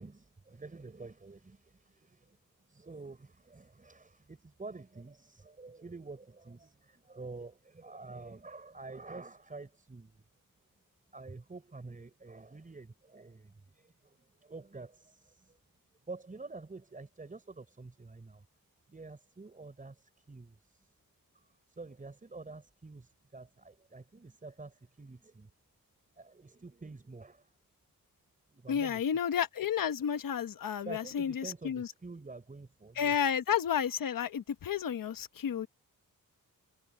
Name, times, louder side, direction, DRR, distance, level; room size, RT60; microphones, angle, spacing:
voice 1, 0.0-2.4 2.7-10.2 11.1-15.6 16.1-18.5 18.9-20.9 21.7-25.5 26.2-27.5 28.5-29.0 30.8-33.2, right 3 dB, 25° right, 5.3 m, -48 dB
voice 2, 28.7-31.9 33.0-35.7, left 8 dB, 70° left, 1.2 m, -31 dB
wide cardioid pair, 180°, 35 cm